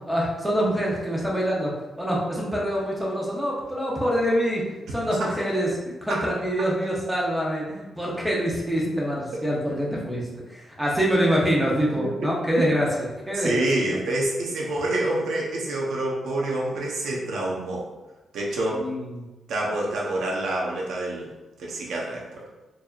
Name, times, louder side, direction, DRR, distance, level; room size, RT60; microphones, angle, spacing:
voice 1, 0.1-4.7 4.9-14.0 18.7-19.3, equal, 5° right, -4 dB, 0.9 m, -25 dB
voice 2, 12.2-12.6 13.3-17.9 18.3-18.8 19.5-21.3 21.6-22.4, right 2 dB, 90° right, -3 dB, 0.9 m, -27 dB
4.5 x 2.7 x 2.5 m, 1.1 s
cardioid pair, 125°, 0 cm